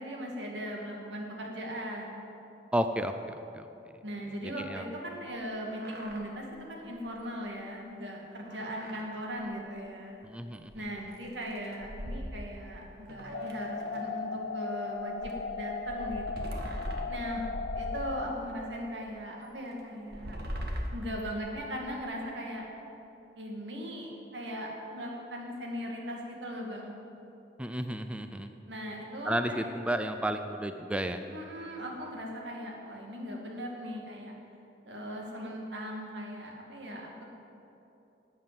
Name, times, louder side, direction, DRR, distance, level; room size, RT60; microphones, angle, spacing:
voice 1, 0.0-2.2 4.0-10.2 10.7-16.6 17.1-17.4 17.7-20.4 20.9-22.6 23.4-26.9 28.7-29.7 31.3-34.3 34.8-37.3, equal, 85° right, 0 dB, 2.4 m, -39 dB
voice 2, 2.7-3.7 4.4-4.8 10.2-10.7 27.6-28.5 29.3-31.2, right 1 dB, 5° right, 8 dB, 0.5 m, -32 dB
sound 1, 5.4-5.5 5.7-6.2 6.6-6.7 7.0-7.1 8.4-9.1 9.4-9.5 10.7-10.8 11.1-12.7 13.1-14.1 15.0-18.5 19.1-19.2 19.9-21.9, equal, 65° right, 1.5 m, -40 dB
sound 2, 13.3-18.3, left 4 dB, 55° left, 0.6 m, -37 dB
12.5 x 8.8 x 7.8 m, 2.9 s
head